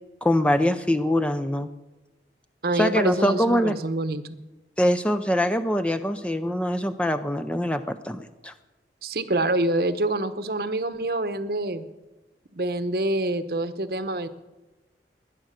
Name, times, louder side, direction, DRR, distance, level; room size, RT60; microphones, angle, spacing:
voice 1, 0.2-1.7 2.7-3.7 4.8-8.5, equal, 5° left, 10 dB, 0.5 m, -23 dB
voice 2, 2.6-4.4 9.0-11.8 12.5-14.3, right 2 dB, 55° right, 11 dB, 0.9 m, -26 dB
19.0 x 10.5 x 6.6 m, 1.1 s
head